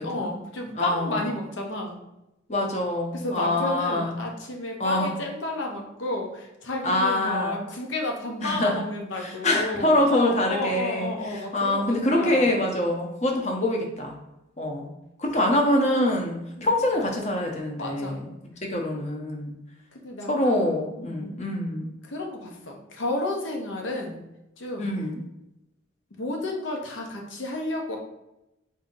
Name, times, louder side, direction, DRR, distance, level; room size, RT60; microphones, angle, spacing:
voice 1, 0.0-2.0 3.1-12.5 15.2-15.7 16.2-16.8 17.8-18.2 19.9-21.4 22.0-24.2 24.6-24.9 26.2-28.0, left 2 dB, 90° left, 1 dB, 0.8 m, -32 dB
voice 2, 0.8-1.3 2.5-4.1 4.8-5.1 6.8-7.6 8.4-8.8 9.2-14.2 14.6-14.9 15.2-18.3 18.6-19.5 20.3-21.9 24.8-25.2, left 1 dB, 35° left, 1 dB, 0.7 m, -25 dB
3.8 x 2.8 x 3.8 m, 0.91 s
head